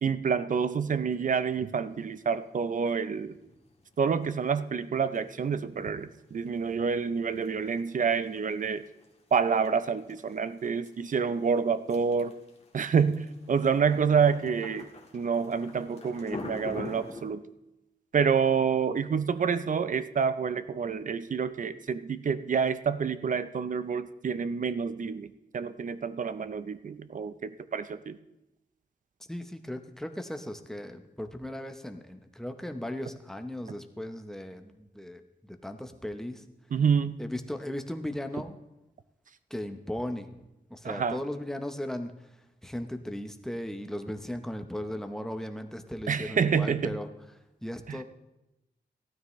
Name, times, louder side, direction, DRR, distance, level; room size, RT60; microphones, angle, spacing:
voice 1, 0.0-3.4 4.0-8.8 9.3-12.4 12.7-17.4 18.1-28.2 36.7-37.1 40.8-41.2 46.1-46.9 47.9-48.0, right 6 dB, 50° right, 13 dB, 0.5 m, -28 dB
sound 1, 1.1-17.2, left 3 dB, 40° left, 1.8 m, -48 dB
voice 2, 29.2-36.4 37.2-38.6 39.5-40.4 40.7-47.1 47.6-48.0, left 1 dB, 5° left, 6 dB, 0.8 m, -37 dB
15.5 x 12.5 x 3.1 m, 0.94 s
wide cardioid pair, 140°, 17 cm